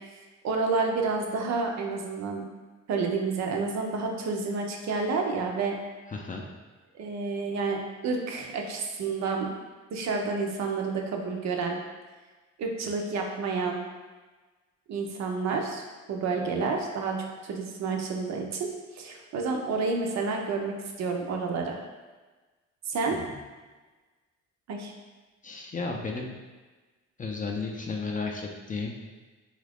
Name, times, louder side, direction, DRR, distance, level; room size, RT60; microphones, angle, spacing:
voice 1, 0.4-2.4 2.9-5.8 6.9-9.5 9.9-11.8 12.6-13.8 14.9-15.8 16.1-18.7 18.9-21.8 22.9-23.2 24.7-24.9, right 4 dB, 60° right, 2 dB, 0.6 m, -29 dB
voice 2, 6.1-6.5 23.1-23.3 25.4-26.3 27.2-29.0, left 4 dB, 25° left, 1 dB, 0.4 m, -33 dB
2.9 x 2.4 x 3.4 m, 1.3 s
cardioid pair, 90°, 30 cm